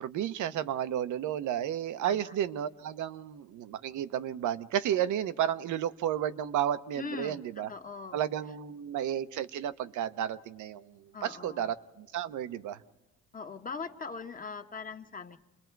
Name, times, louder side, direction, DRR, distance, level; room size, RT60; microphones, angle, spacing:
voice 1, 0.0-7.7 8.1-12.8, right 10 dB, 80° right, 12 dB, 0.8 m, -32 dB
voice 2, 7.0-8.2 11.1-11.7 13.3-15.4, left 4 dB, 30° left, 7 dB, 1.1 m, -41 dB
28.5 x 21.5 x 4.6 m, 0.96 s
cardioid pair, 90°, 30 cm